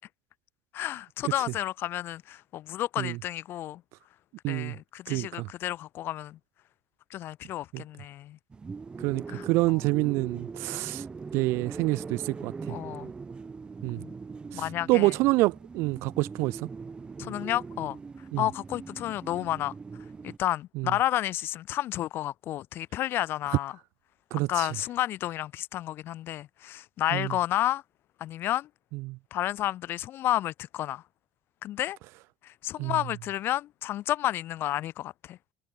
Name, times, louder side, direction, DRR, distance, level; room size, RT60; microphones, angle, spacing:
voice 1, 0.7-3.8 4.5-6.4 7.1-8.4 9.3-9.8 12.7-13.1 14.0-14.1 14.5-15.1 17.2-18.0 18.4-19.7 20.2-23.8 24.5-27.8 28.2-28.7 29.3-31.0 31.6-32.0 32.4-35.4, left 13 dB, 60° left, 1.9 m, -31 dB
voice 2, 4.4-4.7 5.1-5.5 7.7-7.8 9.0-11.0 11.3-12.5 13.8-14.0 14.5-16.7 18.3-18.4 20.8-20.9 24.3-24.7 27.1-27.3 29.1-29.2 32.8-33.0, right 21 dB, 80° right, 0.6 m, -27 dB
sound 1, 8.5-20.4, right 4 dB, 20° right, 3.2 m, -41 dB
cardioid pair, 140°, 4 cm